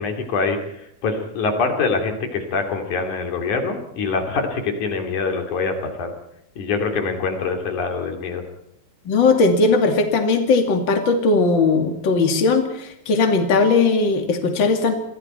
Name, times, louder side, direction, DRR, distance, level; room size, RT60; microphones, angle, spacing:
voice 1, 0.0-6.1 6.6-8.4, left 4 dB, 85° left, 4 dB, 4.2 m, -24 dB
voice 2, 9.1-14.9, left 3 dB, 40° left, 4 dB, 2.9 m, -18 dB
29.0 x 23.5 x 4.4 m, 0.76 s
omnidirectional pair, 3.4 m